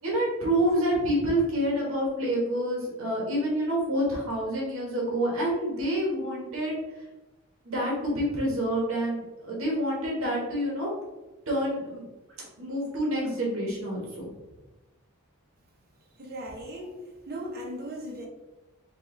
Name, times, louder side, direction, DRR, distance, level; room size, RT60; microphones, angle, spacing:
voice 1, 0.0-6.7 7.6-10.9 11.5-12.0 12.6-14.2, right 1 dB, 70° right, -3 dB, 1.4 m, -27 dB
voice 2, 16.2-17.0 17.3-18.3, equal, 45° right, 0 dB, 0.8 m, -37 dB
4.7 x 2.5 x 3.2 m, 1.1 s
head